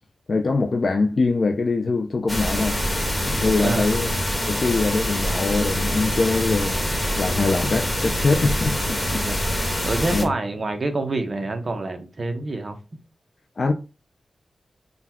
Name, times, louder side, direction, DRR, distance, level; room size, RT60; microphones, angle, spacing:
voice 1, 0.3-2.8 3.3-4.1 4.5-6.8 7.2-9.3 10.1-10.3 13.6-13.7, left 3 dB, 50° left, 0.4 m, -23 dB
sound 1, 2.3-10.2, equal, 20° left, 1.2 m, -25 dB
voice 2, 3.6-3.9 9.2-12.8, right 2 dB, 45° right, 0.8 m, -27 dB
4.0 x 2.3 x 4.2 m
wide cardioid pair, 95°, 0 cm